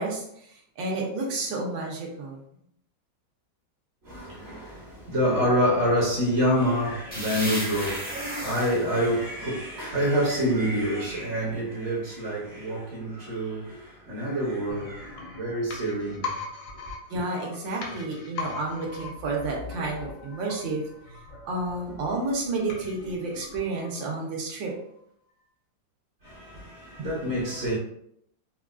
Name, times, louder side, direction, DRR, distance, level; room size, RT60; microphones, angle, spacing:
voice 1, 0.0-2.4 17.1-20.8 21.4-24.7 27.0-27.2, right 2 dB, 80° right, 1.5 m, -31 dB
voice 2, 4.0-16.3 26.2-27.7, equal, 45° right, 0.8 m, -27 dB
sound 1, 7.1-10.7, equal, 10° left, 0.5 m, -36 dB
sound 2, 14.7-24.4 24.7-24.8, left 4 dB, 70° left, 0.7 m, -40 dB
4.3 x 2.3 x 2.4 m
omnidirectional pair, 2.1 m